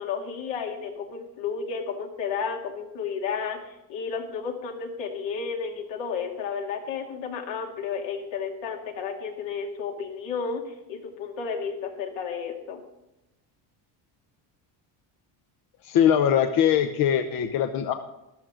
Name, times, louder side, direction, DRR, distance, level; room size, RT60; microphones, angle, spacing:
voice 1, 0.0-12.8, left 6 dB, 75° left, 1 dB, 2.5 m, -32 dB
voice 2, 15.8-17.9, left 9 dB, 50° left, 7 dB, 0.8 m, -22 dB
13.0 x 12.5 x 3.8 m, 0.92 s
cardioid pair, 150°, 45 cm